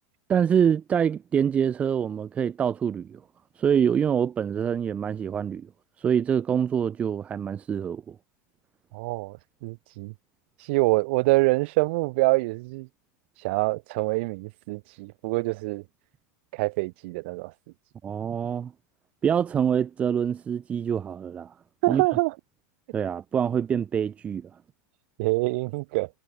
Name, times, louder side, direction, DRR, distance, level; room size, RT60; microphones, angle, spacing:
voice 1, 0.3-3.2 3.6-5.7 6.0-8.2 18.0-18.7 19.2-21.5 21.9-22.0 22.9-24.5, right 8 dB, 15° right, 2.8 m, -25 dB
voice 2, 8.9-10.1 10.6-12.9 13.4-15.8 16.5-17.5 21.8-22.3 25.2-26.1, right 25 dB, 40° right, 6.9 m, -25 dB
supercardioid pair, 180°, 9 cm